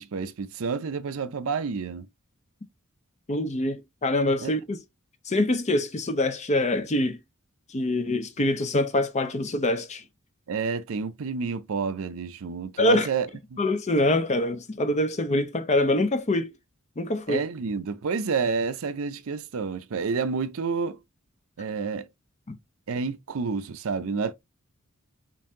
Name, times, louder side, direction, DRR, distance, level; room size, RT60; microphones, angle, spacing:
voice 1, 0.0-2.1 4.4-4.5 10.5-13.3 13.5-13.6 17.3-21.0 21.6-22.1 22.9-24.3, right 5 dB, 65° right, 0.5 m, -29 dB
voice 2, 3.3-4.8 5.3-7.2 7.7-10.0 12.8-13.1 13.6-16.5 17.0-17.4 22.5-22.6, left 1 dB, 30° left, 0.6 m, -25 dB
5.4 x 2.6 x 2.7 m
head